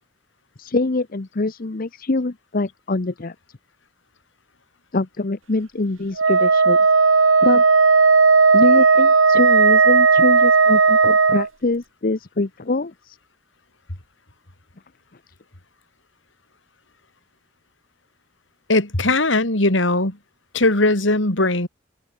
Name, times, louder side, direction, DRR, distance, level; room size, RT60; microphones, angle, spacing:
voice 1, 0.6-3.3 4.9-6.8 7.4-7.6 8.5-13.2, left 2 dB, 45° left, 0.8 m, -24 dB
Wind instrument woodwind instrument, 6.2-11.5, right 4 dB, 80° right, 1.5 m, -14 dB
voice 2, 18.7-20.2 20.5-21.7, left 2 dB, 65° left, 3.4 m, -19 dB
open air
head